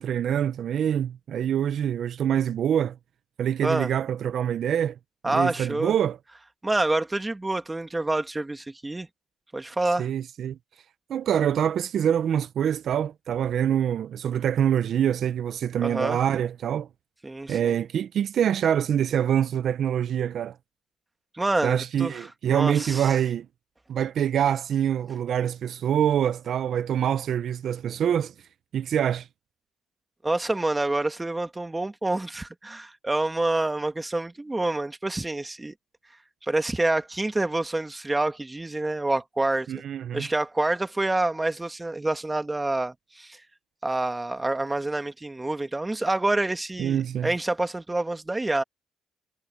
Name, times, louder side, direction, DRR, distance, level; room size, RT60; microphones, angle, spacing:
voice 1, 0.0-3.0 3.4-5.0 5.2-6.2 10.0-10.6 11.1-16.9 17.5-20.6 21.6-23.5 23.9-28.3 28.7-29.3 39.7-40.3 46.8-47.3, right 9 dB, 65° right, 0.6 m, -25 dB
voice 2, 5.2-5.9 6.6-9.1 9.5-10.1 15.8-16.2 17.2-17.7 21.3-23.1 30.2-35.7 36.5-39.8 40.1-43.4 43.8-48.6, right 2 dB, 15° right, 2.2 m, -27 dB
cardioid pair, 90°, 0 cm